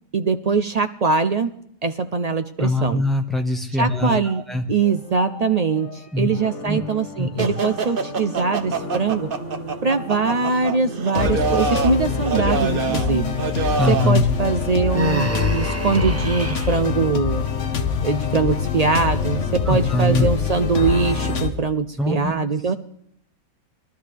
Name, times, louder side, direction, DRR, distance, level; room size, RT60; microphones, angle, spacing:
voice 1, 0.1-3.0 3.8-9.3 9.8-13.3 13.9-17.4 18.0-22.7, right 4 dB, 70° right, 9 dB, 0.3 m, -22 dB
voice 2, 2.6-4.6 6.1-6.3 6.7-6.8 7.2-7.5 13.8-14.2 19.7-20.3 22.0-22.3, left 2 dB, ahead, 3 dB, 1.4 m, -22 dB
sound 1, 4.8-5.9 6.2-10.6 11.1-21.5, left 6 dB, 55° left, 1.4 m, -26 dB
sound 2, 7.4-14.2, right 5 dB, 40° right, 1.0 m, -27 dB
Human voice, 14.9-16.8, right 1 dB, 15° right, 0.5 m, -28 dB
22.5 x 13.0 x 3.4 m, 0.68 s
omnidirectional pair, 1.5 m